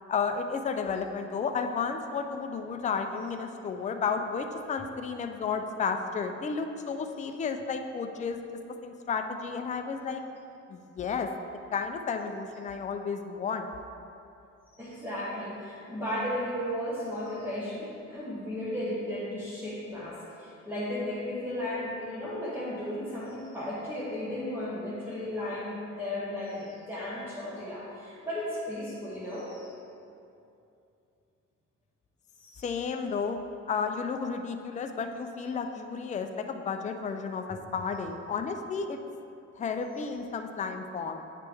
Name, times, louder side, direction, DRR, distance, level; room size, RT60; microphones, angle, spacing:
voice 1, 0.1-8.4 8.8-10.2 10.7-11.3 11.7-13.7 32.6-33.4 33.7-39.0 39.5-41.2, left 5 dB, 25° left, 6 dB, 0.4 m, -32 dB
voice 2, 14.7-29.7 32.4-32.7, left 1 dB, 5° right, -9 dB, 1.1 m, -35 dB
9.3 x 3.3 x 3.4 m, 2.6 s
cardioid pair, 90°, 30 cm